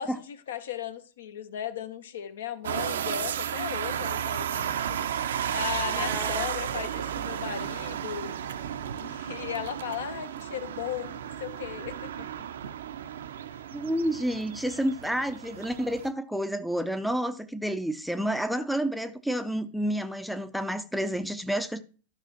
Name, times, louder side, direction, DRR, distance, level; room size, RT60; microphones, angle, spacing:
voice 1, 0.0-5.0 5.5-8.4 9.0-12.3, left 9 dB, 60° left, 0.7 m, -36 dB
sound 1, 2.6-16.1, right 9 dB, 65° right, 0.5 m, -33 dB
voice 2, 5.9-6.5 13.7-21.8, right 1 dB, ahead, 0.5 m, -30 dB
13.0 x 5.5 x 2.9 m
figure-of-eight pair, 90°, 0 cm